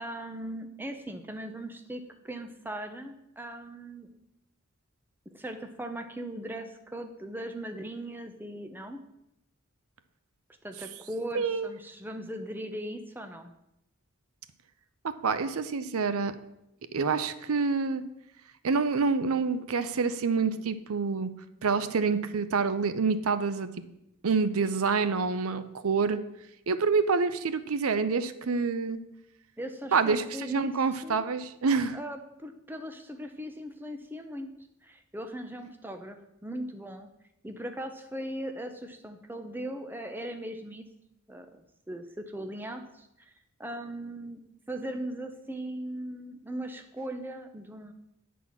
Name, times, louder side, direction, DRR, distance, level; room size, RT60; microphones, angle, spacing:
voice 1, 0.0-4.1 5.3-9.0 10.6-13.5 29.6-30.7 31.0-31.3 31.9-34.5 34.8-37.1 37.4-40.9 41.3-43.3 43.6-44.4 44.7-47.9, right 1 dB, 10° right, 6 dB, 0.6 m, -39 dB
voice 2, 11.3-11.7 15.0-16.4 16.9-18.0 18.6-21.3 21.6-23.7 24.2-26.2 26.7-29.0 29.9-32.0, right 4 dB, 80° right, 12 dB, 0.6 m, -27 dB
9.3 x 4.2 x 7.1 m, 0.83 s
head